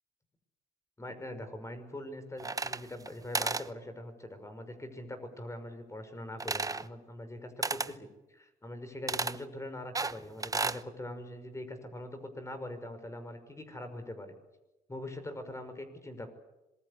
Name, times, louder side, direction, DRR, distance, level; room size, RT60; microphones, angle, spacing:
voice 1, 1.0-14.3 14.9-16.3, left 1 dB, 15° left, 8 dB, 5.7 m, -43 dB
sound 1, 2.4-3.1 3.3-3.7 6.4-6.9 7.6-7.9 9.1-9.4 10.0-10.8, right 3 dB, 20° right, 0.9 m, -33 dB
26.0 x 21.5 x 8.5 m, 0.97 s
cardioid pair, 90°, 16 cm